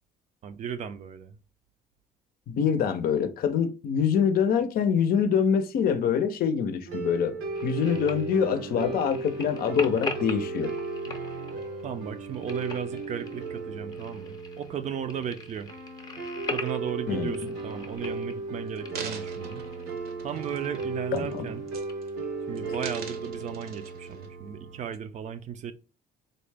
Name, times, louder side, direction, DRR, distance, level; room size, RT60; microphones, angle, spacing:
voice 1, 0.4-1.3 11.8-15.7 16.5-19.7 20.2-21.6 22.5-25.7, right 8 dB, 45° right, 0.4 m, -35 dB
voice 2, 2.5-7.4 7.6-10.7 17.1-17.4 21.1-21.5, left 7 dB, 60° left, 0.5 m, -25 dB
sound 1, 6.9-24.9, right 3 dB, 90° right, 1.0 m, -36 dB
sound 2, 7.5-23.0, left 3 dB, 25° left, 0.7 m, -42 dB
sound 3, 18.1-18.2 18.7-20.8 21.1-21.4 21.7-22.2 22.6-24.3 24.9-25.0, right 6 dB, 65° right, 0.8 m, -42 dB
3.9 x 2.1 x 3.2 m
cardioid pair, 110°, 17 cm